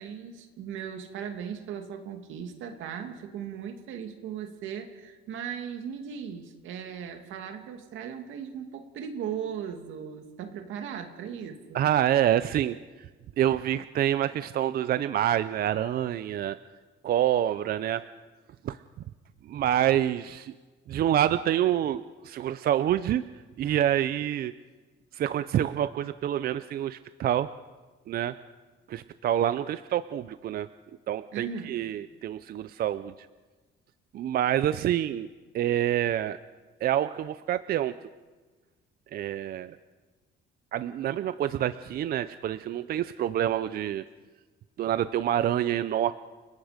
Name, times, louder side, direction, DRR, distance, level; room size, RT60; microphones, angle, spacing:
voice 1, 0.0-11.8 31.3-31.8, right 8 dB, 80° right, 6 dB, 2.4 m, -38 dB
voice 2, 11.7-13.1 13.4-16.6 17.0-18.0 18.6-18.8 19.4-20.5 20.9-23.2 23.6-24.5 25.1-27.5 28.1-28.3 28.9-30.7 31.1-33.1 34.1-35.3 35.5-36.4 36.8-38.0 39.1-39.8 40.7-44.0 44.8-46.1, right 11 dB, 50° right, 14 dB, 0.5 m, -27 dB
30.0 x 18.5 x 5.1 m, 1.3 s
cardioid pair, 145°, 20 cm